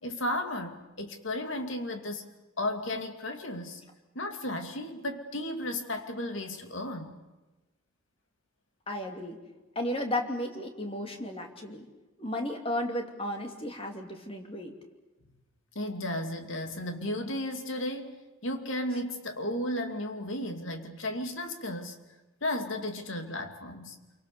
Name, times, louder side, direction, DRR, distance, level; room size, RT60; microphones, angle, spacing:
voice 1, 0.0-2.3 2.6-3.8 4.1-7.2 15.7-18.1 18.4-22.0 22.4-24.0, left 1 dB, 70° left, 6 dB, 2.6 m, -34 dB
voice 2, 8.9-9.4 9.7-11.9 12.2-14.7, left 1 dB, 30° left, 3 dB, 2.7 m, -34 dB
27.5 x 24.5 x 6.9 m, 1.1 s
head